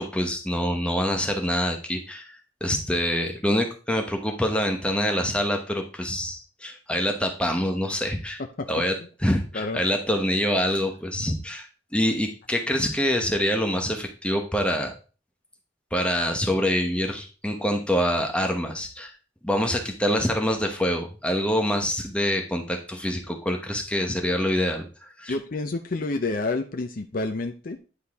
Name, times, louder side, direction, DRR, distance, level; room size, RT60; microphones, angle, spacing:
voice 1, 0.0-8.4 8.7-8.9 9.2-11.7 11.9-14.9 15.9-19.1 19.4-24.9 25.2-25.3, equal, 5° left, 3 dB, 1.0 m, -25 dB
voice 2, 8.4-9.1 9.5-9.8 10.6-10.8 25.3-27.8, left 3 dB, 50° left, 5 dB, 0.6 m, -30 dB
9.6 x 4.2 x 3.5 m, 0.35 s
head